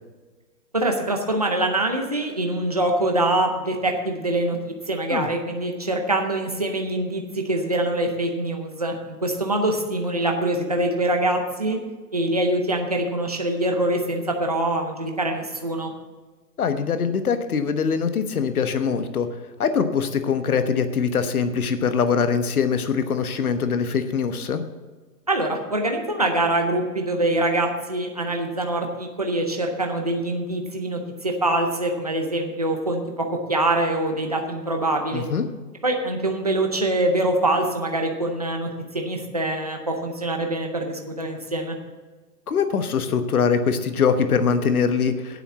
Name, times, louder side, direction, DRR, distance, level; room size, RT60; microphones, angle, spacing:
voice 1, 0.7-11.8 12.1-15.9 25.3-35.3 35.8-41.8, right 1 dB, 25° right, 3 dB, 0.6 m, -24 dB
voice 2, 16.6-19.3 19.6-24.6 35.1-35.4 42.5-45.4, left 6 dB, 60° left, 9 dB, 1.2 m, -23 dB
9.4 x 8.1 x 7.1 m, 1.3 s
hypercardioid pair, 180°, 49 cm